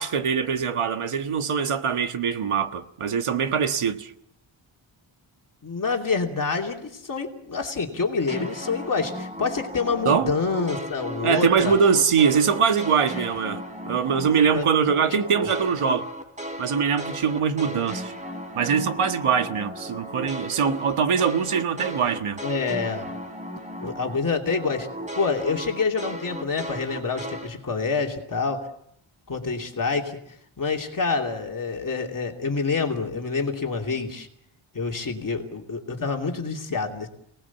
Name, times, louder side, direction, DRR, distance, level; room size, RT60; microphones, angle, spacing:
voice 1, 0.0-4.1 10.0-10.3 11.2-16.1 16.6-18.1 18.5-22.4, right 6 dB, 85° right, 1.7 m, -23 dB
voice 2, 5.6-11.7 13.2-13.3 14.5-14.7 15.3-15.5 22.4-23.1 23.8-24.9 25.2-28.7 29.3-30.2 30.6-34.3 34.7-37.1, left 4 dB, 40° left, 2.9 m, -27 dB
sound 1, 8.3-14.6 14.9-24.2 24.5-27.5, equal, 15° right, 3.8 m, -36 dB
29.5 x 19.0 x 7.2 m
wide cardioid pair, 160°, 49 cm